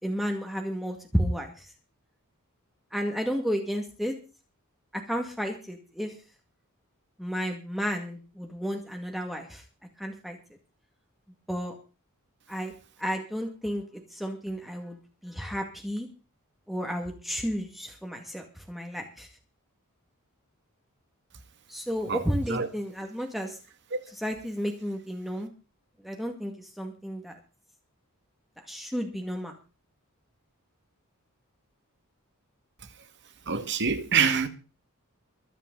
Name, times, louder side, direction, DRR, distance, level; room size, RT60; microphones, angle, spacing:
voice 1, 0.0-1.7 2.9-4.2 4.9-6.2 7.2-9.6 10.0-10.4 11.5-11.8 12.5-12.7 13.0-13.8 14.1-16.1 16.7-19.3 21.7-23.6 24.1-25.5 26.0-27.4 28.7-29.6, equal, ahead, 2.0 m, -32 dB
voice 2, 33.5-34.5, right 6 dB, 55° right, 2.0 m, -25 dB
23.5 x 9.1 x 4.0 m
head